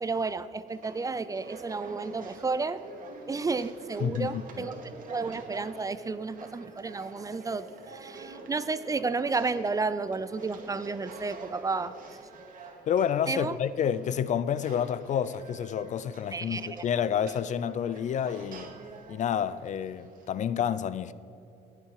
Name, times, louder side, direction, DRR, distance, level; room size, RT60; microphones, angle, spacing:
voice 1, 0.0-2.8 3.3-4.7 5.1-11.9 13.3-13.6 16.3-16.8, right 4 dB, 20° right, 0.4 m, -32 dB
sound 1, 0.7-20.3, right 3 dB, 55° right, 2.1 m, -47 dB
voice 2, 4.0-4.7 12.9-18.7 19.1-21.1, left 8 dB, 45° left, 0.5 m, -29 dB
19.0 x 7.6 x 4.7 m
cardioid pair, 110°, 17 cm